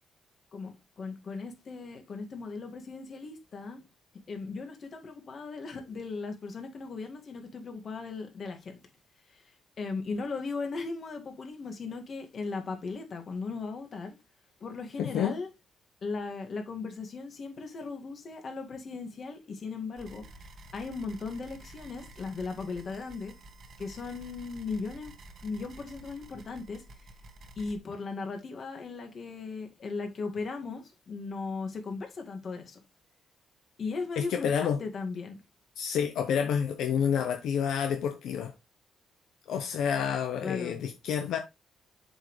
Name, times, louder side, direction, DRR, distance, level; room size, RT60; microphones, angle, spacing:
voice 1, 0.5-3.8 4.3-8.8 9.3-14.2 14.6-15.5 16.0-20.3 20.7-23.3 23.8-25.1 25.4-26.8 27.6-32.8 33.8-35.4 40.4-40.8, left 4 dB, 50° left, 1.9 m, -37 dB
voice 2, 15.0-15.3 34.2-34.8 35.8-38.5 39.5-41.4, left 8 dB, 80° left, 0.8 m, -29 dB
sound 1, 20.0-27.8, right 1 dB, 60° right, 1.2 m, -50 dB
7.3 x 5.4 x 3.2 m
cardioid pair, 90°, 0 cm